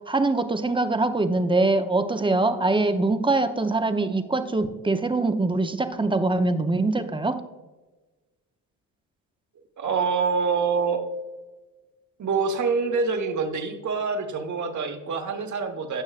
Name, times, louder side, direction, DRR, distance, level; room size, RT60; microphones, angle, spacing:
voice 1, 0.1-7.4, right 2 dB, 15° right, 8 dB, 0.8 m, -23 dB
voice 2, 9.8-11.0 12.2-16.0, right 5 dB, 50° right, 5 dB, 1.4 m, -26 dB
16.5 x 6.3 x 2.5 m, 1.2 s
supercardioid pair, 60°, 39 cm